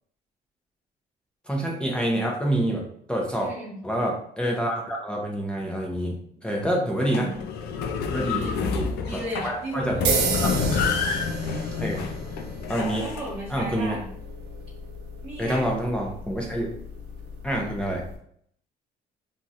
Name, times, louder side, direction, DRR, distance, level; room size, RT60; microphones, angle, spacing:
voice 1, 1.5-3.5 3.8-7.3 8.1-10.0 10.4-10.9 11.8-12.1 12.7-13.0 13.5-14.0 15.4-16.7 17.4-18.1, right 1 dB, 5° left, -2 dB, 0.6 m, -27 dB
voice 2, 3.4-3.8 6.5-7.4 8.1-8.6 9.0-10.3 11.8-12.1 12.7-14.1 15.2-15.7, right 1 dB, 35° right, -8 dB, 1.1 m, -36 dB
sound 1, 7.0-13.2, left 5 dB, 70° left, 0.4 m, -28 dB
sound 2, 10.0-18.2, right 4 dB, 85° right, 0.6 m, -33 dB
2.9 x 2.6 x 2.5 m, 0.65 s
cardioid pair, 110°, 17 cm